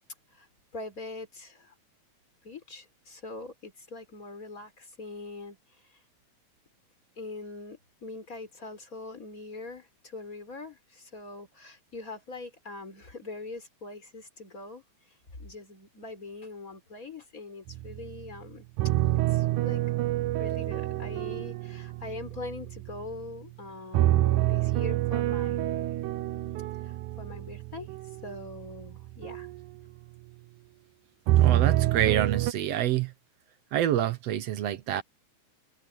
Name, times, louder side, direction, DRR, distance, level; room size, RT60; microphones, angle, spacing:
voice 1, 0.7-1.7 2.4-5.6 5.9-6.0 7.2-14.8 15.4-18.7 19.3-19.8 20.4-25.9 26.8-27.9 28.2-29.5, left 3 dB, 25° left, 4.9 m, -42 dB
sound 1, 17.7-18.4 18.8-23.3 23.9-29.6 31.3-32.5, right 15 dB, 80° right, 2.4 m, -27 dB
voice 2, 31.4-33.1 33.7-35.0, right 11 dB, 65° right, 1.9 m, -27 dB
omnidirectional pair, 3.5 m